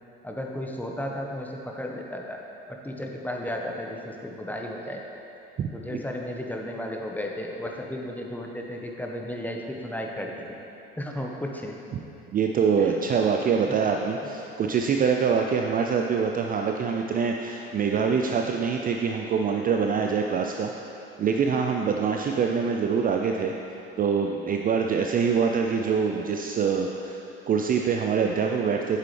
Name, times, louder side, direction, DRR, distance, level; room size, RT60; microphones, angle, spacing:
voice 1, 0.2-2.4 2.7-5.0 5.7-10.3 11.0-11.7 12.8-13.0 14.2-14.3, left 1 dB, 5° left, 0 dB, 1.0 m, -34 dB
voice 2, 5.6-6.0 12.3-20.7 21.2-23.5 24.0-27.2 27.5-29.0, right 6 dB, 30° right, 2 dB, 0.5 m, -25 dB
8.4 x 7.5 x 3.3 m, 2.9 s
hypercardioid pair, 65°, 29 cm